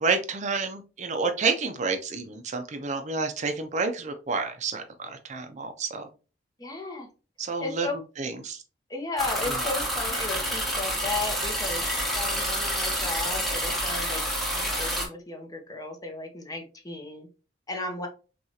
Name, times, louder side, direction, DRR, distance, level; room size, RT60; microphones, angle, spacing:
voice 1, 0.0-6.1 7.4-7.9 8.2-8.6, right 4 dB, 40° right, 7 dB, 0.5 m, -29 dB
voice 2, 6.6-7.1 7.6-8.0 8.9-11.8 12.1-14.2 14.5-17.3 17.7-18.1, left 3 dB, 20° left, 3 dB, 0.7 m, -34 dB
sound 1, 9.2-15.1, equal, ahead, 1.1 m, -28 dB
5.9 x 2.4 x 2.8 m, 0.34 s
head